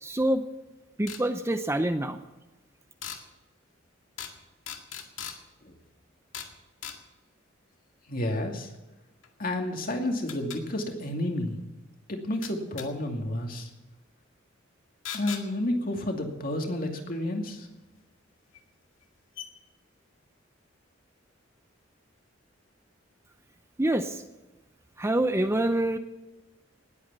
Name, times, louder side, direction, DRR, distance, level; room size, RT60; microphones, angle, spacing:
voice 1, 0.0-0.4 1.0-2.2 23.8-24.2 25.0-26.0, right 1 dB, 15° right, 8 dB, 0.7 m, -26 dB
sound 1, 1.1-1.2 3.0-3.2 4.2-4.4 4.7-5.4 6.3-6.5 6.8-7.0 9.2-9.3 10.3-10.6 12.4-12.9 15.1-15.4 17.5-17.6 18.5-18.6 19.0-19.1 19.4-19.5, left 9 dB, 75° left, 2.1 m, -38 dB
voice 2, 8.1-8.7 9.4-11.6 12.1-13.7 15.1-17.7, left 1 dB, 45° left, 3 dB, 2.4 m, -30 dB
19.5 x 8.6 x 6.8 m, 1.1 s
head